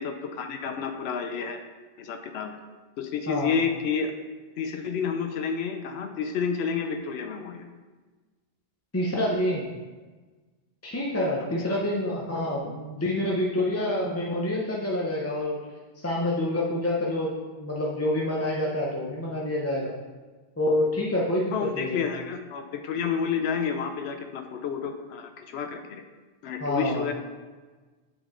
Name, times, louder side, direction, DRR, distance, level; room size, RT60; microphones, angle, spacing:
voice 1, 0.0-1.6 2.0-2.6 3.0-4.1 4.6-7.7 11.5-11.8 21.5-26.0 26.4-27.1, left 6 dB, 90° left, 6 dB, 0.8 m, -30 dB
voice 2, 3.3-3.6 8.9-9.7 10.8-15.6 16.0-17.3 17.6-19.9 20.6-22.0 26.6-27.1, left 1 dB, 20° left, -4 dB, 0.5 m, -27 dB
7.8 x 3.7 x 3.7 m, 1.3 s
omnidirectional pair, 1.0 m